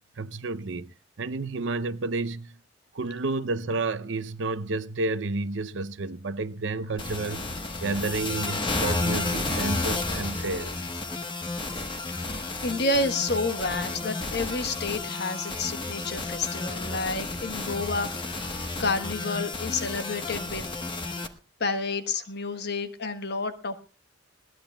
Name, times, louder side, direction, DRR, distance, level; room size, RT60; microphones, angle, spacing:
voice 1, 0.2-2.6 2.9-10.8, right 3 dB, 65° right, 0.6 m, -31 dB
sound 1, 7.0-21.3, left 2 dB, 25° left, 1.2 m, -32 dB
voice 2, 12.1-20.6 21.6-23.8, left 3 dB, 55° left, 1.3 m, -30 dB
21.0 x 17.0 x 2.3 m
head